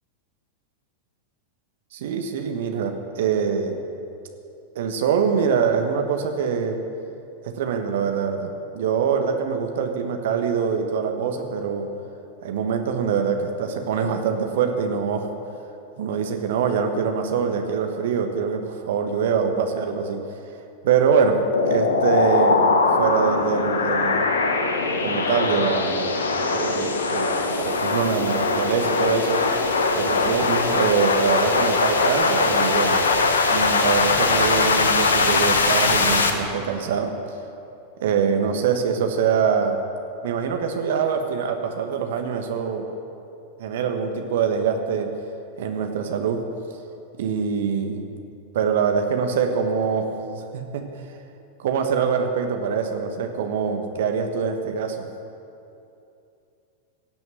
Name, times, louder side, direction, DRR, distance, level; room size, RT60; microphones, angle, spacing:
voice 1, 1.9-3.8 4.7-6.8 7.5-11.9 12.4-15.3 16.0-20.2 20.8-22.6 23.0-24.3 25.0-26.1 26.5-29.4 29.9-33.0 33.5-37.1 38.0-39.8 40.2-42.8 43.6-45.1 45.6-46.4 47.2-48.1 48.5-50.9 51.6-55.0, right 6 dB, 55° right, 5 dB, 1.3 m, -24 dB
sound 1, 21.5-36.3, left 3 dB, 70° left, 1.1 m, -21 dB
17.5 x 7.8 x 7.7 m, 2.7 s
figure-of-eight pair, 90°, 0 cm